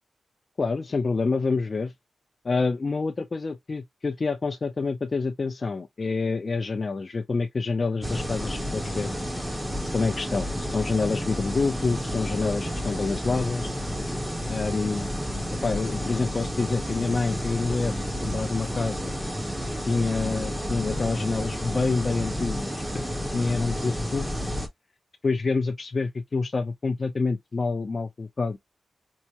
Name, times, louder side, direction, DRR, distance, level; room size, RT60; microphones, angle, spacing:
voice 1, 0.6-1.9 2.4-9.1 9.9-13.7 14.5-15.1 15.6-17.9 18.2-19.1 19.9-23.0 23.3-24.3 25.2-28.6, left 4 dB, 40° left, 0.4 m, -27 dB
sound 1, 8.0-24.7, equal, 5° right, 0.9 m, -31 dB
4.6 x 2.0 x 2.8 m
wide cardioid pair, 110°, 0 cm